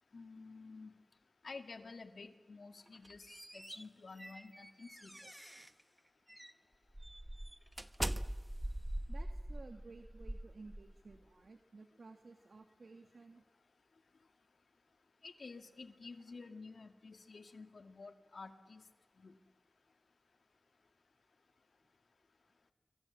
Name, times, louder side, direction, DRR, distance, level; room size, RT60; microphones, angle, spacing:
voice 1, 0.1-0.9 1.4-5.2 15.2-18.8 19.2-19.3, left 4 dB, 75° left, 9 dB, 2.1 m, -51 dB
sound 1, 2.9-5.8 6.3-6.5 6.9-11.2, right 1 dB, 15° right, 1.2 m, -43 dB
voice 2, 9.1-13.4, right 3 dB, 75° right, 7 dB, 1.6 m, -55 dB
27.5 x 24.0 x 7.3 m, 1.4 s
cardioid pair, 45°, 0 cm